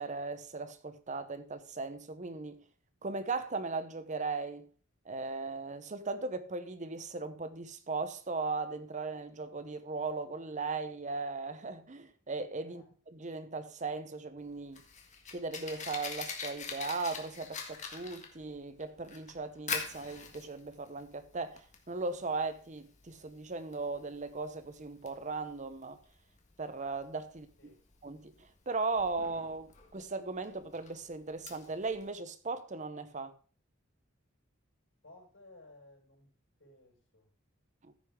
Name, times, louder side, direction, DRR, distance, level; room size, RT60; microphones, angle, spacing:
voice 1, 0.0-2.6 3.0-4.7 5.1-12.8 13.1-14.8 15.3-21.6 21.9-26.0 26.6-27.5 28.0-28.3 28.7-33.3 37.8-37.9, right 3 dB, 35° right, 0.9 m, -37 dB
Fire, 14.4-32.1, left 5 dB, 35° left, 1.6 m, -45 dB
voice 2, 27.3-27.8 35.0-36.3 36.6-37.3, left 2 dB, 70° left, 5.0 m, -58 dB
14.0 x 6.5 x 3.7 m
head